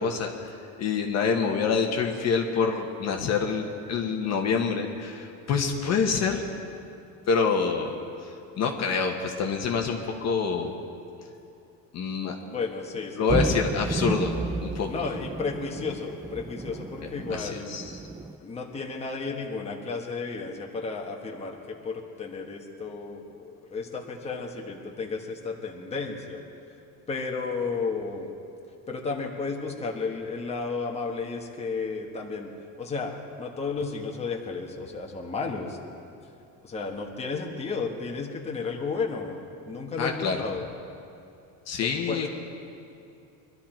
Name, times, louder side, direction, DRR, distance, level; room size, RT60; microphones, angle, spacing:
voice 1, 0.0-6.4 7.3-8.3 8.6-10.7 11.9-12.4 13.2-14.3 14.6-14.9 17.3-18.0 40.0-40.4 41.7-42.3, left 5 dB, 40° left, 2 dB, 1.2 m, -27 dB
voice 2, 12.4-13.6 14.9-17.7 18.4-26.4 27.1-28.3 28.9-33.1 33.4-35.8 36.6-40.7 41.8-42.3, left 4 dB, 15° left, 0 dB, 1.3 m, -33 dB
sound 1, 13.3-18.3, right 3 dB, 10° right, 0.4 m, -32 dB
22.5 x 12.5 x 4.5 m, 2.6 s
cardioid pair, 150°, 38 cm